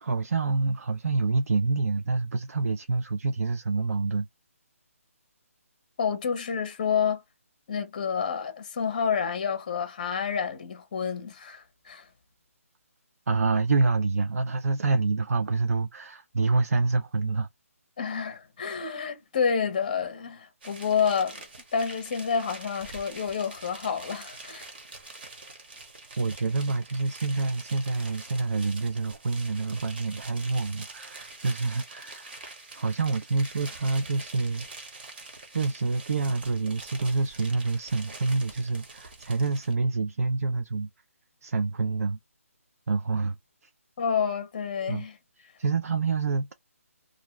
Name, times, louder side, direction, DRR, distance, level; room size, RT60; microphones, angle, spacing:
voice 1, 0.0-4.3 13.3-17.5 26.2-32.4 32.8-34.7 35.5-40.9 41.4-42.2 42.9-43.4 44.9-45.0 45.6-46.5, right 3 dB, 75° right, 0.4 m, -27 dB
voice 2, 6.0-7.2 7.7-12.1 18.0-21.4 21.7-24.6 44.0-45.2, left 6 dB, 30° left, 0.6 m, -29 dB
sound 1, 20.6-39.7, right 3 dB, 40° right, 0.9 m, -45 dB
2.5 x 2.1 x 2.9 m
hypercardioid pair, 170°, 8 cm